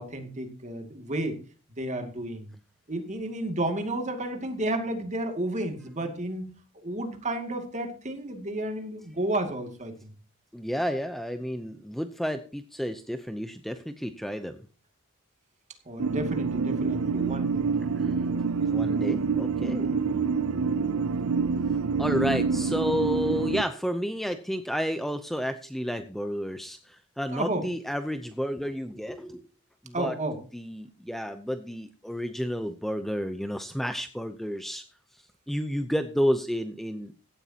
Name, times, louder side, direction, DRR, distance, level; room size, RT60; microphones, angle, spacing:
voice 1, 0.0-1.4 1.8-2.5 2.9-6.5 6.8-10.1 15.9-17.6 27.3-27.7 29.9-30.4, right 1 dB, 35° right, 5 dB, 2.4 m, -32 dB
voice 2, 10.5-14.6 18.0-18.1 18.7-19.9 22.0-29.4 29.9-30.1 30.5-34.8 35.5-37.1, equal, ahead, 8 dB, 0.7 m, -31 dB
sound 1, 16.0-23.6, right 5 dB, 65° right, 0.6 m, -27 dB
16.5 x 12.5 x 2.9 m, 0.37 s
head